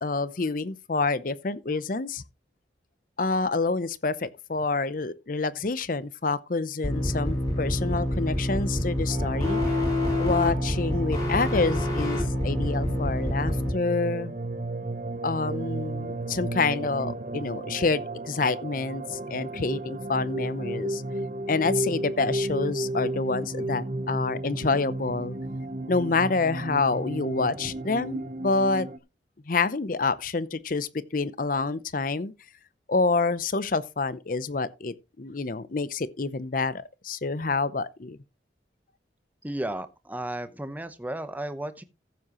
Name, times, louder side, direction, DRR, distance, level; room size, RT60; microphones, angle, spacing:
voice 1, 0.0-2.2 3.2-9.8 10.2-14.3 15.2-21.0 21.5-25.4 25.9-28.9 29.5-32.3 32.9-38.2, left 3 dB, 45° left, 0.6 m, -27 dB
sound 1, 6.8-13.7, left 1 dB, 20° left, 5.8 m, -27 dB
sound 2, 9.1-29.0, right 2 dB, 40° right, 0.8 m, -34 dB
voice 2, 39.4-41.8, right 1 dB, 10° right, 0.8 m, -34 dB
14.5 x 7.4 x 3.0 m
head